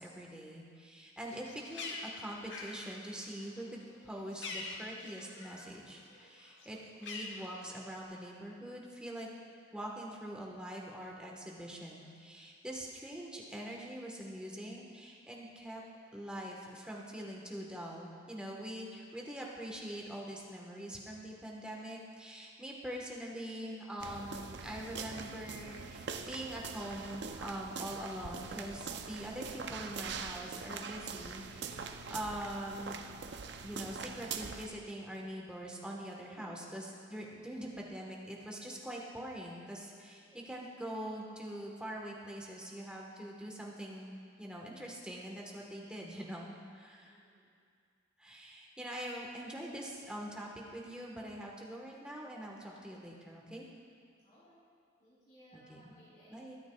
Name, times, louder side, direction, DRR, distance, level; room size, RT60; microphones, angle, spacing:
voice 1, 0.0-9.3 9.7-15.8 16.1-33.0 33.6-47.2 48.2-53.7 55.5-55.9 56.3-56.5, right 1 dB, 5° right, -2 dB, 1.3 m, -44 dB
Bird, 1.2-5.8 6.1-8.0, left 3 dB, 70° left, 1.1 m, -45 dB
sound 1, 24.0-34.7, right 5 dB, 60° right, 0.5 m, -43 dB
voice 2, 40.2-40.5 47.0-47.5 54.2-54.7 55.0-56.4, right 1 dB, 45° left, -11 dB, 3.0 m, -61 dB
23.0 x 9.0 x 2.3 m, 2.2 s
head